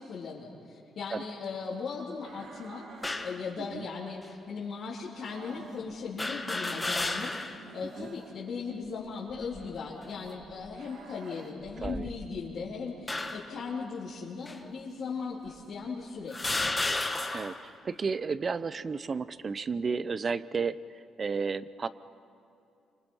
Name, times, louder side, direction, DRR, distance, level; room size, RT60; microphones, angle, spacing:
voice 1, 0.0-16.6, left 5 dB, 60° left, -8 dB, 3.6 m, -38 dB
sound 1, 2.2-3.1 5.2-5.9 7.5-8.4 10.7-11.5, right 4 dB, 80° right, 2.9 m, -50 dB
sound 2, 3.0-3.4 4.2-4.3 6.2-7.6 8.1-8.2 9.3-9.8 10.4-10.7 11.6-12.5 13.1-13.6 14.5-14.6 15.5-15.6 16.3-17.6, left 2 dB, 15° left, 1.6 m, -33 dB
voice 2, 17.3-21.9, right 5 dB, 40° right, 16 dB, 0.7 m, -33 dB
29.0 x 25.0 x 5.6 m, 2.6 s
cardioid pair, 90°, 0 cm